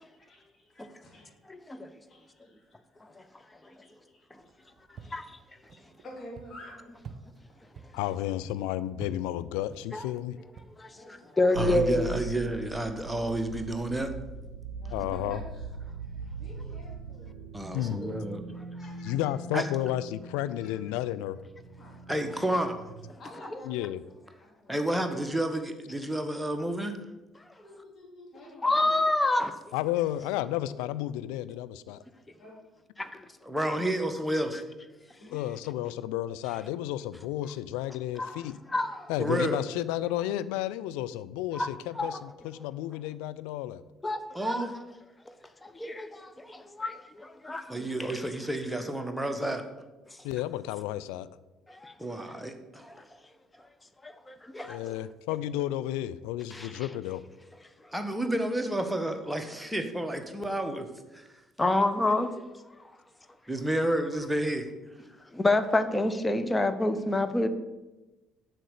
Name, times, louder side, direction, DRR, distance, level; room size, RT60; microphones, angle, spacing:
voice 1, 0.0-1.3 2.1-3.1 3.6-5.2 5.7-7.2 10.9-11.4 14.8-15.7 16.3-18.3 18.8-19.4 20.6-21.0 21.8-22.6 23.1-24.0 24.4-25.0 26.5-26.6 27.5-29.0 29.9-30.1 30.6-30.7 32.4-32.5, left 1 dB, 40° left, 3.8 m, -50 dB
voice 2, 1.5-1.9 3.0-3.9 4.3-4.4 5.0-5.4 9.9-10.0 10.6-12.1 27.4-27.5 28.6-29.6 33.0-33.3 34.3-34.4 35.2-35.4 38.2-39.1 41.5-41.7 41.9-42.2 44.0-44.7 45.3-48.2 50.1-50.2 51.7-52.0 52.8-53.1 53.6-53.7 54.0-55.0 56.5-56.9 57.6-57.9 61.6-62.9 65.2-67.5, left 2 dB, 15° left, 0.9 m, -29 dB
sound 1, 4.4-11.2, right 5 dB, 45° right, 0.8 m, -50 dB
voice 3, 7.9-10.4 14.9-15.4 17.7-18.0 19.0-21.4 23.6-24.0 29.7-32.0 35.2-38.6 39.1-42.2 42.4-43.8 50.2-51.3 54.6-57.2, left 13 dB, 65° left, 0.3 m, -32 dB
voice 4, 11.5-14.1 15.0-15.1 17.5-18.4 19.5-19.6 22.1-22.7 24.7-26.9 33.4-34.6 39.2-39.6 44.3-44.7 47.7-49.6 52.0-52.8 57.9-61.3 63.5-64.7, right 1 dB, 5° right, 1.3 m, -30 dB
sound 2, 11.5-23.1, right 4 dB, 75° right, 0.6 m, -41 dB
7.5 x 6.4 x 6.7 m
figure-of-eight pair, 50°, 0 cm